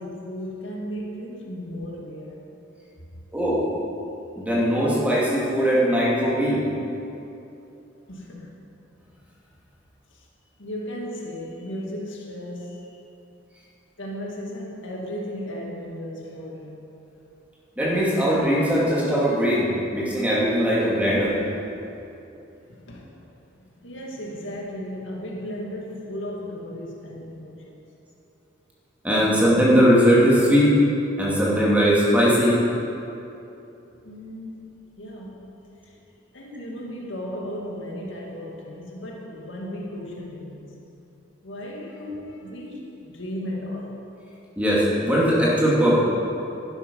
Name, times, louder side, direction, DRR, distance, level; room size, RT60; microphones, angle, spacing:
voice 1, 0.0-2.5 3.1-3.2 8.1-8.6 10.1-10.3 10.6-13.0 14.0-17.0 22.7-27.8 34.0-35.5 35.8-36.0 36.3-40.7 41.4-44.0, equal, 80° left, -1 dB, 2.1 m, -35 dB
voice 2, 3.3-3.6 4.4-6.6 17.8-21.4 29.0-30.8 31.2-32.6 44.6-46.0, equal, 10° right, -7 dB, 2.5 m, -20 dB
11.5 x 11.0 x 5.5 m, 2.8 s
head